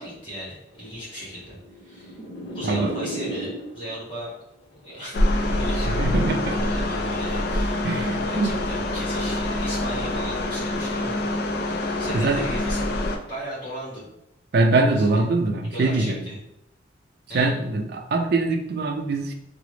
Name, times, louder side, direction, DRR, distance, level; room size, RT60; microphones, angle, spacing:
voice 1, 0.0-2.1 2.5-4.3 4.8-8.0 8.3-11.3 11.7-12.9 13.3-14.1 14.9-15.3 15.7-16.4 17.3-17.5, equal, 25° left, -8 dB, 1.5 m, -36 dB
sound 1, 0.8-4.0 4.8-6.4, right 1 dB, 75° left, 0.7 m, -35 dB
sound 2, 5.1-13.2, left 1 dB, 55° left, 0.3 m, -25 dB
voice 2, 5.8-6.7 7.8-8.6 12.1-12.4 14.5-16.3 17.3-19.3, right 3 dB, 55° right, 4 dB, 0.4 m, -23 dB
3.7 x 2.0 x 3.2 m, 0.84 s
head